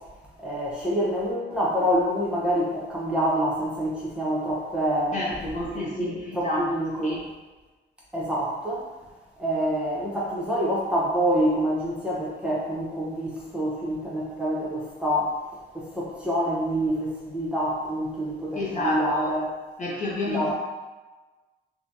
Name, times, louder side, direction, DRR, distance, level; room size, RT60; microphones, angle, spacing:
voice 1, 0.4-5.2 6.0-7.2 8.1-8.9 9.4-15.4 15.7-19.5 20.2-20.5, equal, 5° right, -7 dB, 0.9 m, -26 dB
voice 2, 5.1-6.7 7.0-7.2 18.5-19.3 19.8-20.5, left 2 dB, 40° left, -5 dB, 0.8 m, -29 dB
3.2 x 2.2 x 2.6 m, 1.2 s
cardioid pair, 90°, 20 cm